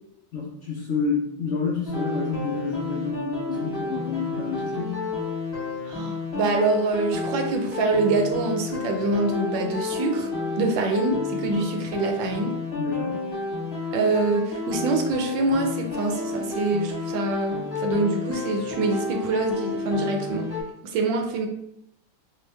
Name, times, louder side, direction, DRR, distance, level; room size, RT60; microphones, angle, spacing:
voice 1, 0.3-5.0 12.8-13.2, left 4 dB, 85° left, -5 dB, 0.6 m, -29 dB
sound 1, 1.9-20.6, left 3 dB, 40° left, 1.2 m, -31 dB
voice 2, 5.9-10.3 10.6-12.5 13.9-20.5 20.8-21.5, right 3 dB, 80° right, 3 dB, 1.4 m, -25 dB
4.4 x 2.2 x 3.3 m, 0.79 s
omnidirectional pair, 2.1 m